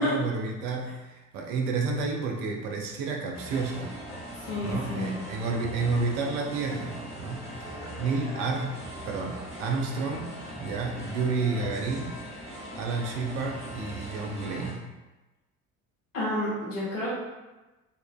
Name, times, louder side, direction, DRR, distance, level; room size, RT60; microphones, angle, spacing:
voice 1, 0.0-4.0 4.6-7.5 8.0-8.8 9.1-12.2 12.7-14.8, right 4 dB, 65° right, 1 dB, 0.6 m, -30 dB
sound 1, 3.3-14.7, right 1 dB, 15° left, 1.5 m, -40 dB
voice 2, 4.5-5.1 16.1-17.2, left 1 dB, 70° left, -8 dB, 1.1 m, -30 dB
2.6 x 2.4 x 2.2 m, 1.1 s
figure-of-eight pair, 55°, 41 cm